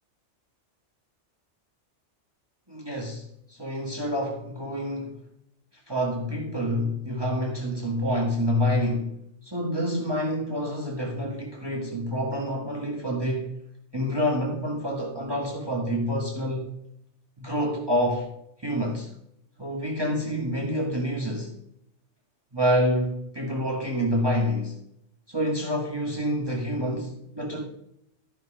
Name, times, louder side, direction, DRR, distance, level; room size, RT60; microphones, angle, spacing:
voice 1, 2.7-3.2 3.5-5.2 5.9-9.1 9.4-13.5 13.9-16.7 17.4-18.3 18.6-19.1 19.6-21.5 22.5-24.7 25.3-27.6, equal, 20° right, 1.8 m, -27 dB
13.0 x 5.7 x 4.9 m
omnidirectional pair, 1.2 m